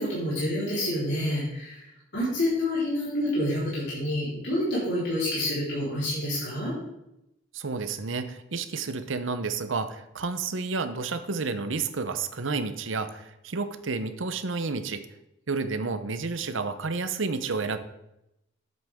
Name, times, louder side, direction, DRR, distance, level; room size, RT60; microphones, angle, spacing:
voice 1, 0.0-1.8 2.1-6.7, left 1 dB, 60° left, -9 dB, 4.3 m, -28 dB
voice 2, 7.5-15.0 15.5-17.8, right 4 dB, 75° right, 10 dB, 0.8 m, -30 dB
10.5 x 8.0 x 3.7 m, 0.85 s
head